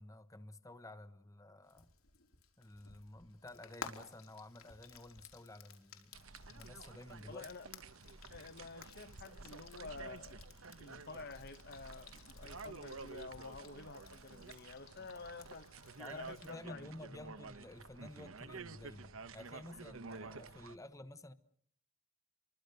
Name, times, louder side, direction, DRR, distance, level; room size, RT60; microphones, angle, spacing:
voice 1, 0.0-1.9 2.6-6.2 6.5-7.4 16.0-21.3, left 1 dB, 15° left, 1.0 m, -52 dB
Frying (food), 1.7-16.5, left 6 dB, 80° left, 4.5 m, -56 dB
sound 1, 6.1-20.8, right 4 dB, 75° right, 1.2 m, -51 dB
voice 2, 7.3-7.7 8.3-10.4 10.8-15.7 16.1-16.9, left 4 dB, 50° left, 1.0 m, -50 dB
28.0 x 24.0 x 6.8 m
head